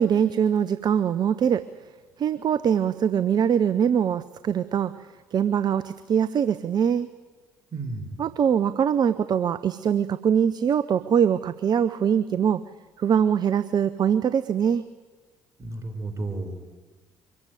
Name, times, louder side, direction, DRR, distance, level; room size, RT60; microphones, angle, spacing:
voice 1, 0.0-1.6 2.2-4.9 5.3-7.1 8.2-12.6 13.0-14.8, right 8 dB, 45° right, 15 dB, 0.7 m, -23 dB
voice 2, 7.7-8.2 15.6-16.6, right 2 dB, 30° right, 7 dB, 4.5 m, -32 dB
24.0 x 15.0 x 9.2 m, 1.3 s
hypercardioid pair, 55°, 10 cm